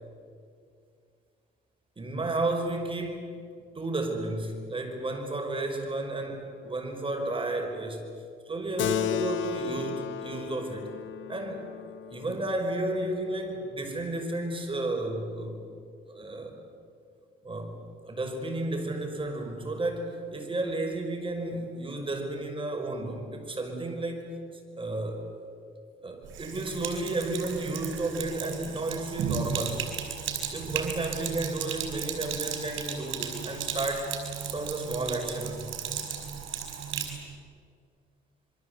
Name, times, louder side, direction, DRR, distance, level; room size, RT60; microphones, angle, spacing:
voice 1, 2.0-3.4 3.8-8.0 8.5-11.0 11.3-11.7 12.1-15.6 16.1-16.6 17.4-17.8 18.0-24.2 24.8-25.4 26.0-29.8 30.5-34.1 34.5-35.7, right 2 dB, 25° right, 4 dB, 5.6 m, -32 dB
Keyboard (musical), 8.8-13.7, left 11 dB, 75° left, 1.3 m, -35 dB
Sink (filling or washing), 26.2-37.2, right 8 dB, 80° right, 4.9 m, -35 dB
27.5 x 23.0 x 8.3 m, 2.3 s
cardioid pair, 90°, 20 cm